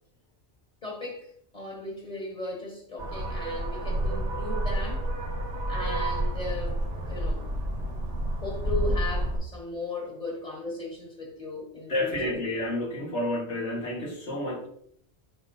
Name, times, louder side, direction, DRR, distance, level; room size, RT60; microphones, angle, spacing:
voice 1, 0.8-5.1 5.7-6.8 7.0-7.5 8.4-12.4, left 2 dB, 35° left, 1.9 m, -37 dB
sound 1, 3.0-9.4, right 1 dB, 85° right, 1.9 m, -29 dB
voice 2, 11.9-14.7, left 1 dB, 85° left, 2.0 m, -30 dB
7.8 x 5.8 x 2.7 m
omnidirectional pair, 1.1 m